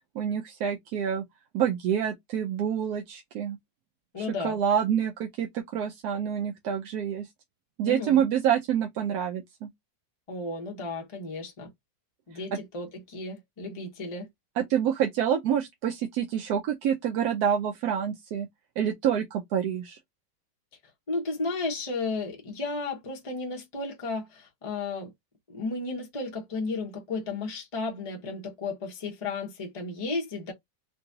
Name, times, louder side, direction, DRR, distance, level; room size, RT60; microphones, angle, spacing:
voice 1, 0.2-1.2 1.5-3.6 4.2-7.3 7.8-9.7 12.5-12.6 14.6-18.5 18.8-20.0, right 9 dB, 70° right, 1.0 m, -27 dB
voice 2, 4.1-4.6 7.9-8.2 10.3-11.7 12.3-14.3 21.1-25.1 25.5-30.5, left 3 dB, 25° left, 0.7 m, -33 dB
3.9 x 2.2 x 2.6 m
omnidirectional pair, 1.9 m